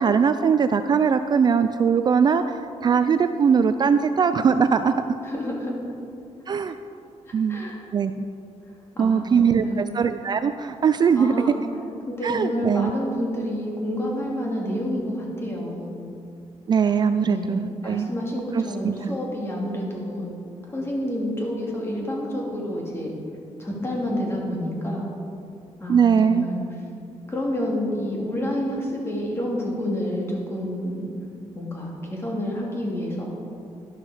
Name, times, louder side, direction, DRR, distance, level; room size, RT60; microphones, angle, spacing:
voice 1, 0.0-4.9 6.5-6.8 7.3-7.6 7.9-8.2 9.0-11.3 12.2-12.9 16.7-18.1 18.5-18.6 19.0-19.1 25.9-26.5, right 6 dB, 40° right, 10 dB, 0.3 m, -21 dB
voice 2, 5.2-5.7 7.3-7.8 8.9-9.9 11.1-11.6 12.1-15.9 17.1-20.3 20.7-23.1 23.6-25.1 25.8-26.6 27.3-31.1 31.5-33.3, equal, 20° left, -3 dB, 2.4 m, -29 dB
11.5 x 11.5 x 4.9 m, 2.5 s
wide cardioid pair, 170°, 12 cm